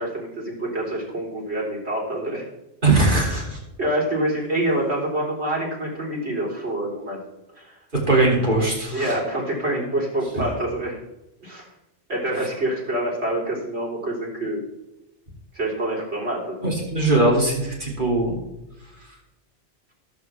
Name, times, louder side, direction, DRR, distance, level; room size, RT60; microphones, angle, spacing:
voice 1, 0.0-2.4 3.8-7.2 7.5-7.8 8.9-11.0 11.4-11.7 12.1-14.6 15.5-16.7, right 1 dB, 65° right, -4 dB, 4.6 m, -26 dB
voice 2, 2.8-3.6 7.9-9.1 16.6-18.3, right 2 dB, 45° right, -2 dB, 3.5 m, -20 dB
18.0 x 8.0 x 3.6 m, 0.92 s
omnidirectional pair, 1.2 m